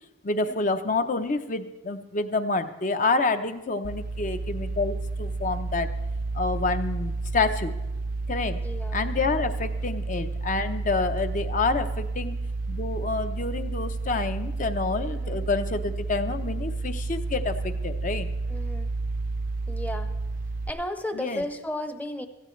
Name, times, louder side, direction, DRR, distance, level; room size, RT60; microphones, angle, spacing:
voice 1, 0.2-5.9 6.3-7.7 8.3-8.6 8.9-12.4 12.7-18.3 21.1-21.4, left 3 dB, 40° left, 9 dB, 0.7 m, -28 dB
sound 1, 3.8-20.7, right 3 dB, 45° right, 0.5 m, -31 dB
voice 2, 8.6-9.0 15.1-15.5 18.5-18.9 19.7-20.2 20.7-22.3, left 1 dB, 10° left, 8 dB, 0.8 m, -34 dB
17.0 x 14.0 x 3.2 m, 1.0 s
head